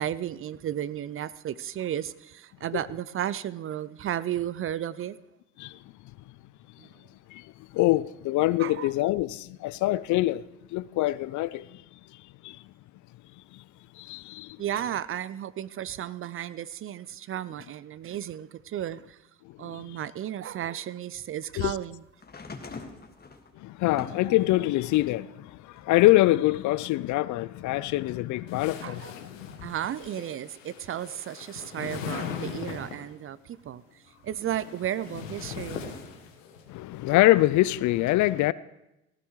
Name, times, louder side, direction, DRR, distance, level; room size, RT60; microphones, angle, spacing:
voice 1, 0.0-5.2 6.8-6.9 8.6-8.9 14.6-19.2 19.6-22.0 28.8-29.1 29.6-35.9, right 11 dB, 35° right, 0.5 m, -34 dB
voice 2, 7.3-10.4 10.7-12.7 13.5-13.6 13.9-14.6 19.4-20.0 21.6-21.7 23.6-29.6 36.7-38.5, left 17 dB, 50° left, 0.5 m, -25 dB
sound 1, 22.2-25.2 25.7-26.9 27.9-28.0, left 4 dB, 25° left, 1.7 m, -44 dB
sound 2, 28.5-33.2 34.2-36.6, left 7 dB, 85° left, 1.4 m, -40 dB
18.5 x 14.5 x 3.1 m
hypercardioid pair, 60°, 38 cm